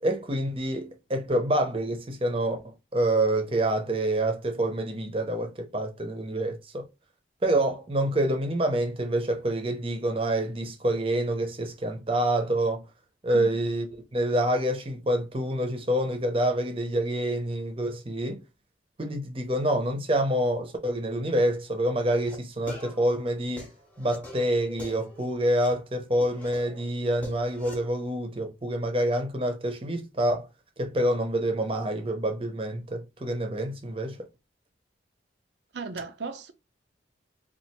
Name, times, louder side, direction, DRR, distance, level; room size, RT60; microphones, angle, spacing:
voice 1, 0.0-6.9 7.4-12.9 13.2-18.4 19.0-23.7 24.0-30.5 30.8-34.3, right 1 dB, 30° right, 0.8 m, -27 dB
sound 1, 21.4-21.5 22.0-22.3 22.7-25.7 26.2-27.8, left 1 dB, 10° left, 0.9 m, -44 dB
voice 2, 35.7-36.5, right 4 dB, 70° right, 0.6 m, -36 dB
2.9 x 2.5 x 4.3 m
head